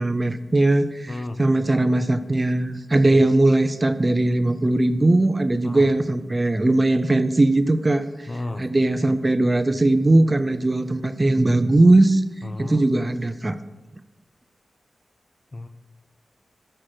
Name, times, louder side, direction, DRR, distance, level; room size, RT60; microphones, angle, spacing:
voice 1, 0.0-8.3 8.6-12.2 12.6-13.6, right 2 dB, 25° right, 11 dB, 0.4 m, -19 dB
voice 2, 1.1-1.4 3.0-3.2 5.6-5.9 8.3-8.6 12.4-12.9 15.5-15.7, left 2 dB, 35° left, 7 dB, 0.6 m, -32 dB
6.5 x 6.2 x 7.5 m, 1.1 s
wide cardioid pair, 105°, 0 cm